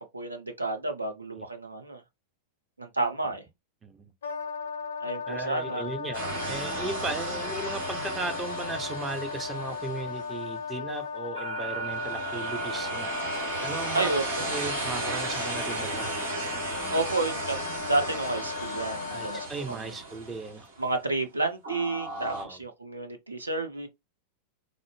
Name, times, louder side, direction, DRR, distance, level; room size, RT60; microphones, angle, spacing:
voice 1, 0.0-2.0 2.8-3.4 5.0-5.9 13.9-14.4 16.9-19.9 20.8-23.9, right 2 dB, 80° right, 0.6 m, -31 dB
Wind instrument woodwind instrument, 4.2-19.5, left 6 dB, 65° left, 0.5 m, -37 dB
voice 2, 5.3-13.1 13.6-16.1 19.1-20.7 22.3-22.6, right 3 dB, 15° right, 0.6 m, -36 dB
sound 1, 6.1-10.6 11.3-21.0 21.6-22.4, right 3 dB, 65° right, 1.5 m, -35 dB
3.8 x 2.0 x 3.2 m
figure-of-eight pair, 90°, 0 cm